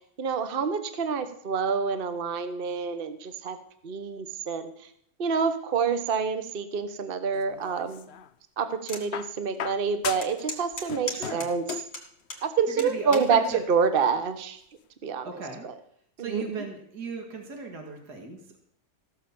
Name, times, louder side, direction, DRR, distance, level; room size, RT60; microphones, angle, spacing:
voice 1, 0.0-3.6 3.8-4.7 5.2-8.0 8.6-11.6 12.4-14.6 15.0-15.3 15.6-15.7 16.2-16.6, right 6 dB, 40° right, 10 dB, 1.0 m, -27 dB
sound 1, 7.3-8.3 9.1-10.5 10.7-12.0 13.1-13.2, left 9 dB, 75° left, 0.6 m, -37 dB
sound 2, 8.9-9.1 9.5-9.6 10.2-12.4 12.8-13.3 14.0-14.3, left 3 dB, 50° left, 2.6 m, -37 dB
voice 2, 11.0-11.5 12.8-13.6 15.2-15.7 16.2-18.6, right 3 dB, 70° right, 2 dB, 2.4 m, -36 dB
16.0 x 6.7 x 7.0 m, 0.67 s
omnidirectional pair, 1.8 m